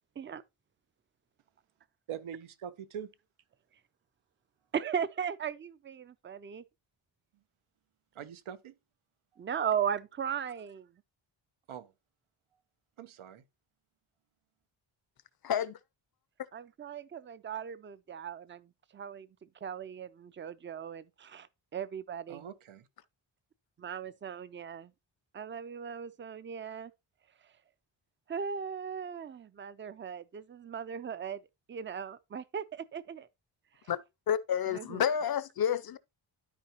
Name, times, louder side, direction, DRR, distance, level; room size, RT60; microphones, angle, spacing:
voice 1, 2.1-3.1 8.1-8.7 9.3-9.4 11.7-11.9 13.0-13.4 22.3-22.9, right 9 dB, 85° right, 1.0 m, -43 dB
voice 2, 4.7-6.6 9.4-10.9 16.5-22.4 23.8-24.9 25.3-26.9 27.4-27.5 28.3-31.4 31.7-33.3 34.7-35.0, right 7 dB, 25° right, 0.4 m, -37 dB
voice 3, 15.4-15.8 33.9-34.0 34.3-36.0, left 8 dB, 50° left, 0.5 m, -29 dB
12.5 x 4.7 x 2.9 m
wide cardioid pair, 165°, 47 cm